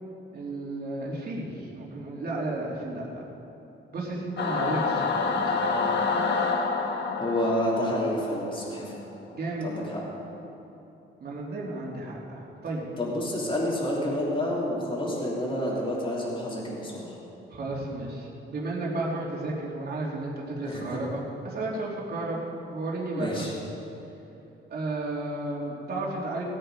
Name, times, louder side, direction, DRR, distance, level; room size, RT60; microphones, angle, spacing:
voice 1, 0.3-3.2 3.9-5.2 5.4-5.8 9.3-9.7 11.2-12.8 17.5-22.4 22.7-23.4 24.7-26.4, right 2 dB, 50° right, -4 dB, 3.0 m, -33 dB
Singing / Musical instrument, 4.4-9.0, left 4 dB, 60° left, 1.4 m, -28 dB
voice 2, 7.2-8.8 9.6-10.0 13.0-17.1 20.6-21.0 23.1-23.5, left 1 dB, 25° left, -6 dB, 3.5 m, -29 dB
18.0 x 8.8 x 5.1 m, 3.0 s
cardioid pair, 90°, 20 cm